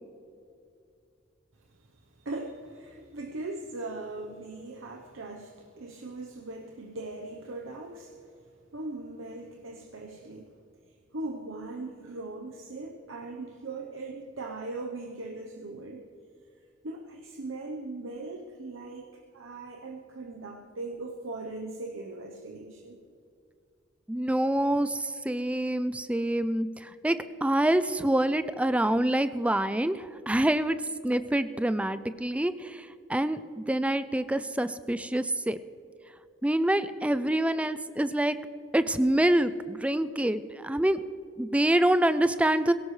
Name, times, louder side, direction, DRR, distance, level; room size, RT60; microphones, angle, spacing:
voice 1, 1.8-8.3 8.7-10.5 11.1-16.1 16.8-23.0, right 2 dB, 80° right, 2 dB, 0.9 m, -39 dB
voice 2, 24.1-30.8 31.0-35.6 36.4-38.4 38.7-41.0 41.4-42.7, right 1 dB, 5° right, 12 dB, 0.4 m, -26 dB
17.5 x 17.0 x 3.2 m, 2.4 s
head